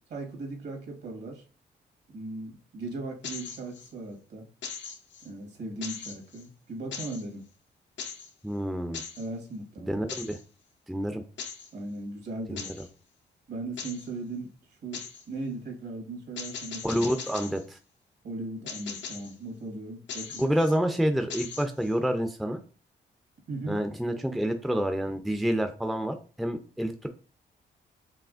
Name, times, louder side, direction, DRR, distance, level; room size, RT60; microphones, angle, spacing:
voice 1, 0.1-1.4 2.1-4.5 5.2-7.5 9.2-10.0 11.7-12.9 13.5-14.5 14.8-17.0 18.2-20.6 23.5-23.8, right 2 dB, 65° right, 2 dB, 1.7 m, -38 dB
sound 1, 3.2-3.9 4.6-5.3 5.8-6.5 6.9-7.3 8.0-8.3 8.9-9.3 10.1-10.4 11.4-11.7 12.6-12.9 13.8-14.1 14.9-15.3 16.4-17.6 18.7-19.4 20.1-20.8 21.3-21.9, left 6 dB, 75° left, 0.7 m, -39 dB
voice 2, 8.4-9.0 9.9-10.4 10.9-11.2 12.5-12.9 16.8-17.8 20.4-22.6 23.7-27.1, equal, ahead, 6 dB, 0.5 m, -28 dB
4.8 x 3.0 x 2.5 m, 0.36 s
cardioid pair, 65°, 19 cm